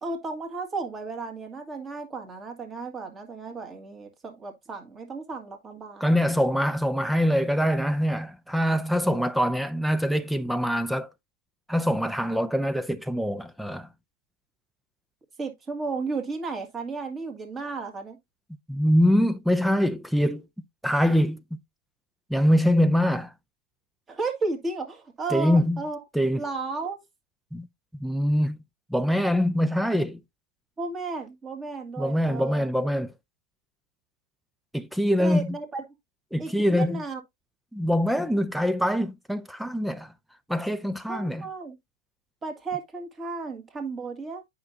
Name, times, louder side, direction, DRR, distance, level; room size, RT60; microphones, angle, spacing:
voice 1, 0.0-6.1 15.4-18.2 24.1-26.0 26.4-27.0 30.8-32.7 35.2-35.8 36.4-37.2 41.1-41.8 42.4-44.4, right 3 dB, 20° right, 1.9 m, -33 dB
voice 2, 6.0-11.1 11.7-13.9 18.7-20.5 20.8-21.6 22.3-23.3 25.3-25.8 26.1-26.4 27.5-27.7 28.0-28.6 28.9-30.2 32.0-33.1 34.7-35.6 36.3-37.0 37.7-40.1 40.5-41.5, equal, ahead, 0.4 m, -24 dB
8.5 x 5.7 x 2.7 m
hypercardioid pair, 135°, 0 cm